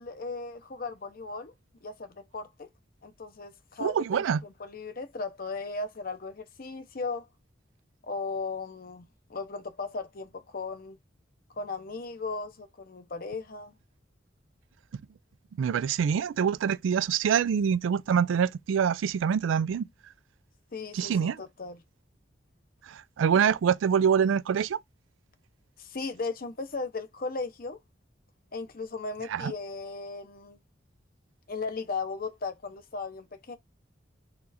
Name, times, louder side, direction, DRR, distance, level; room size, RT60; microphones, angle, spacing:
voice 1, 0.0-1.5 1.8-2.7 3.0-7.3 8.0-11.0 11.5-13.8 20.7-21.8 25.8-27.8 28.5-30.6 31.5-33.6, left 3 dB, 50° left, 0.7 m, -36 dB
voice 2, 3.8-4.4 15.6-19.9 20.9-21.4 22.9-24.8 29.3-29.5, right 7 dB, 85° right, 0.3 m, -25 dB
4.3 x 2.5 x 4.0 m
head